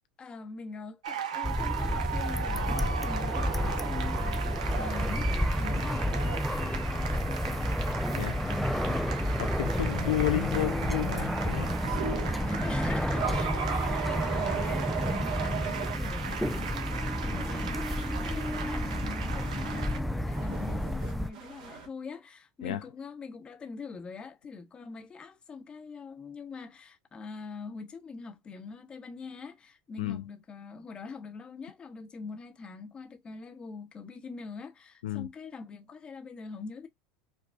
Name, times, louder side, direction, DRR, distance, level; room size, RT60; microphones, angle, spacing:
voice 1, 0.2-9.1 12.1-36.9, left 4 dB, 25° left, 0.8 m, -43 dB
sound 1, 1.0-20.0, right 7 dB, 85° right, 0.7 m, -38 dB
sound 2, 1.4-21.3, equal, ahead, 0.3 m, -30 dB
voice 2, 9.6-12.0 22.6-22.8 30.0-30.2 35.0-35.3, left 13 dB, 85° left, 0.3 m, -31 dB
sound 3, 11.8-12.4 13.1-15.9 16.4-21.9, right 7 dB, 70° right, 1.5 m, -37 dB
5.0 x 2.3 x 2.2 m
hypercardioid pair, 95°, 4 cm